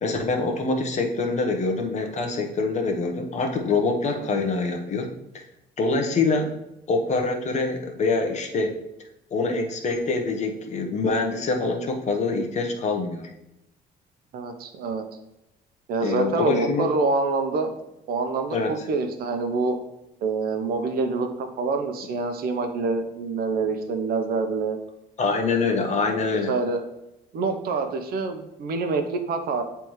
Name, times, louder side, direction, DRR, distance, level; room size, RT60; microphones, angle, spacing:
voice 1, 0.0-5.1 5.3-5.4 5.8-6.5 6.9-8.8 9.3-13.3 16.0-16.9 18.5-18.7 25.2-26.5, left 3 dB, 45° left, 3 dB, 1.0 m, -25 dB
voice 2, 14.3-15.0 15.9-17.7 18.1-19.8 20.2-24.8 26.3-26.8 27.3-29.6, right 3 dB, 65° right, 7 dB, 0.8 m, -26 dB
9.0 x 3.4 x 3.1 m, 0.90 s
cardioid pair, 110°, 17 cm